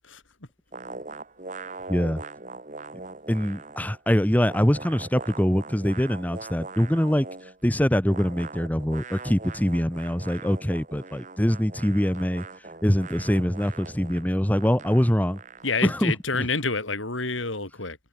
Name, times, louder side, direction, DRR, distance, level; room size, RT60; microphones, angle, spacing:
sound 1, 0.7-4.0 4.3-7.6 8.0-16.1, right 3 dB, 40° right, 2.2 m, -41 dB
voice 1, 1.9-2.2 3.3-7.3 7.6-12.5 12.8-15.4 15.8-16.1 16.4-16.5, equal, 10° left, 1.1 m, -23 dB
voice 2, 15.6-18.0, left 4 dB, 90° left, 5.5 m, -28 dB
head